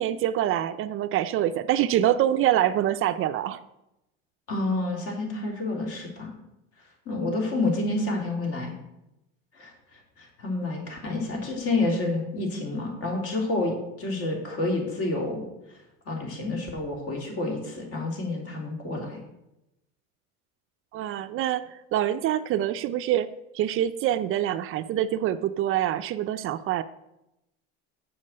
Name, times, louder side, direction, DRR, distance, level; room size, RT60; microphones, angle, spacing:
voice 1, 0.0-3.6 20.9-26.8, right 12 dB, 45° right, 12 dB, 0.4 m, -25 dB
voice 2, 4.5-6.3 7.0-8.7 9.5-15.5 16.1-19.2, left 2 dB, 50° left, 1 dB, 3.1 m, -29 dB
7.4 x 5.9 x 7.6 m, 0.89 s
cardioid pair, 125°, 31 cm